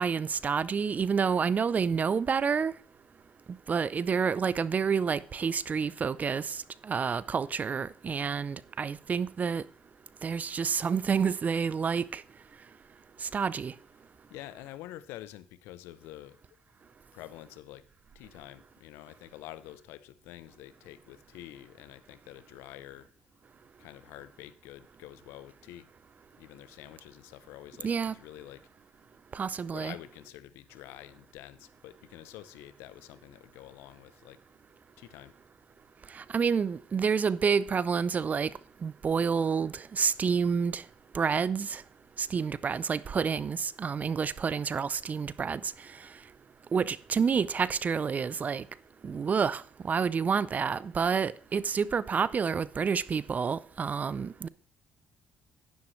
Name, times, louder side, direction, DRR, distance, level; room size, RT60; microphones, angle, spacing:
voice 1, 0.0-2.7 3.7-9.6 10.2-12.2 13.2-13.7 27.8-28.1 29.3-29.9 36.1-38.5 38.8-40.8 41.1-41.8 42.2-45.7 46.7-48.6 49.0-54.5, right 6 dB, 40° right, 0.5 m, -29 dB
voice 2, 14.3-16.4 17.1-17.8 18.1-23.1 23.8-25.9 26.3-28.7 29.7-34.4 35.0-35.3, left 14 dB, 85° left, 0.7 m, -47 dB
11.0 x 10.5 x 3.2 m
supercardioid pair, 65°, 4 cm